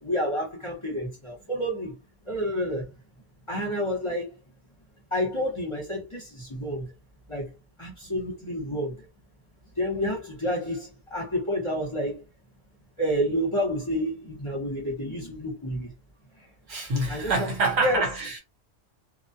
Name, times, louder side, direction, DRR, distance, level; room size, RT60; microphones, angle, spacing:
voice 1, 0.0-1.9 2.3-2.9 3.5-4.3 5.1-6.9 7.3-7.5 7.8-9.1 9.8-12.2 13.0-15.9 17.1-17.5 17.8-18.1, equal, 25° left, 1.0 m, -29 dB
voice 2, 16.7-18.4, right 3 dB, 65° right, 1.1 m, -26 dB
2.3 x 2.2 x 2.7 m
omnidirectional pair, 1.2 m